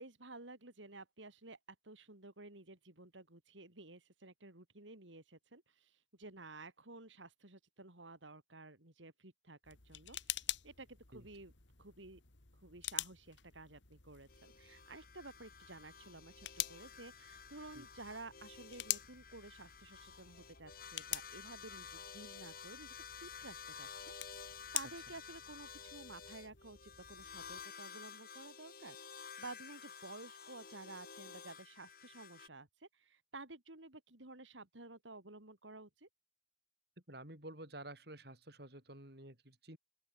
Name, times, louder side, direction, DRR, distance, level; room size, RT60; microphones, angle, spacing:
voice 1, 0.0-1.6 1.8-11.5 11.8-12.2 12.5-36.1, right 2 dB, 85° right, 3.7 m, -53 dB
sound 1, 9.6-27.6, left 13 dB, 75° left, 2.1 m, -47 dB
sound 2, 14.3-32.5, left 6 dB, 50° left, 4.9 m, -52 dB
voice 2, 37.1-39.8, right 1 dB, 55° right, 7.6 m, -51 dB
open air
head